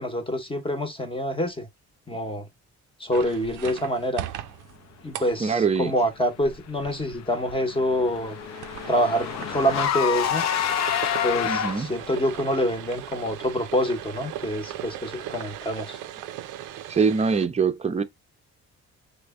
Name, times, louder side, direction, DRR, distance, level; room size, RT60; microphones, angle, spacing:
voice 1, 0.0-1.7 2.1-2.5 3.0-4.2 5.0-8.4 8.9-10.4 11.2-16.0, equal, 15° left, 0.8 m, -26 dB
sound 1, 3.1-17.5, right 12 dB, 90° right, 0.5 m, -39 dB
voice 2, 5.4-5.9 11.4-11.9 16.9-18.0, right 5 dB, 20° right, 0.5 m, -23 dB
Car / Engine, 7.1-12.1, left 10 dB, 65° left, 0.5 m, -28 dB
3.2 x 2.1 x 3.4 m
cardioid pair, 90°, 30 cm